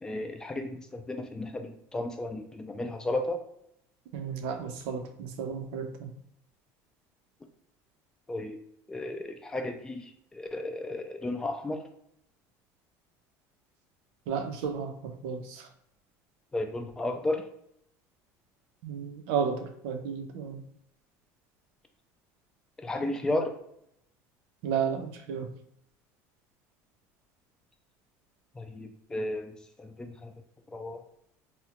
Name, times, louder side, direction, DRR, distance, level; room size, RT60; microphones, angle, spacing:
voice 1, 0.0-3.4 8.3-8.6 8.9-11.8 16.5-17.4 22.8-23.5 28.6-29.5 29.8-30.3 30.7-31.0, left 1 dB, 10° left, 5 dB, 0.3 m, -33 dB
voice 2, 4.1-6.1 14.3-15.7 18.8-20.6 24.6-25.5, right 7 dB, 85° right, 6 dB, 0.5 m, -33 dB
3.6 x 2.1 x 2.8 m, 0.73 s
cardioid pair, 160°, 7 cm